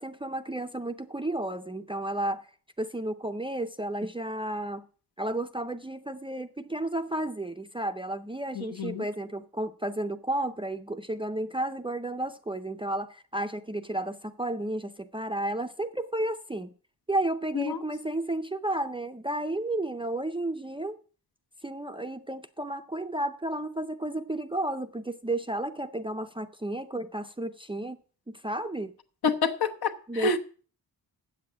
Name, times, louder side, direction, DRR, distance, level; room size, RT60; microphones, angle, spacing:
voice 1, 0.0-2.5 2.8-4.8 5.2-16.7 17.1-21.0 21.6-28.0 28.3-28.9 30.1-30.4, right 1 dB, 15° right, 0.4 m, -32 dB
voice 2, 8.5-9.0 17.5-17.8 29.2-30.4, left 4 dB, 70° left, 1.1 m, -28 dB
7.9 x 7.7 x 8.5 m
wide cardioid pair, 175°, 39 cm